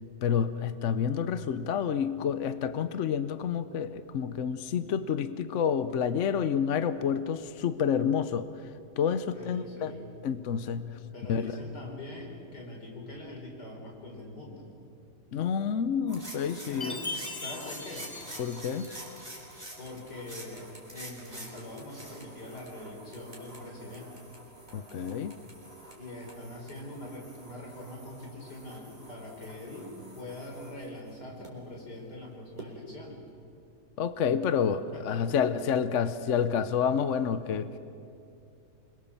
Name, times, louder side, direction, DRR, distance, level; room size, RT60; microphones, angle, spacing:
voice 1, 0.2-8.5 9.0-9.9 10.2-11.0 11.3-11.5 15.3-16.9 18.4-18.9 24.7-25.3 34.0-37.8, left 7 dB, 55° left, 12 dB, 0.9 m, -29 dB
voice 2, 9.3-10.1 11.1-14.7 16.7-18.1 19.8-24.2 26.0-33.2 34.9-35.4, left 1 dB, 70° left, 0 dB, 5.1 m, -43 dB
sound 1, 16.1-31.5 32.6-32.7, right 1 dB, 25° right, 4.1 m, -47 dB
Chime, 16.8-19.3, left 2 dB, 20° left, 1.4 m, -40 dB
26.5 x 22.0 x 7.2 m, 2.7 s
omnidirectional pair, 1.8 m